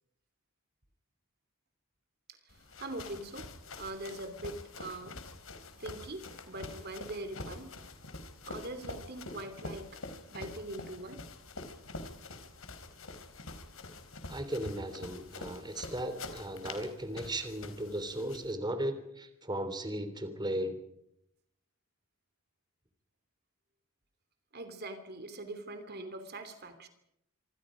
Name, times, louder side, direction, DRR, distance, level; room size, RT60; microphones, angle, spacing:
sound 1, 2.5-18.5, left 2 dB, 75° left, 4.2 m, -46 dB
voice 1, 2.5-5.2 5.8-7.7 8.4-10.0 10.3-11.2 24.5-26.9, right 2 dB, 50° right, 8 dB, 3.1 m, -42 dB
voice 2, 14.3-20.8, right 1 dB, 20° right, 9 dB, 3.3 m, -36 dB
26.5 x 26.5 x 5.1 m, 0.77 s
head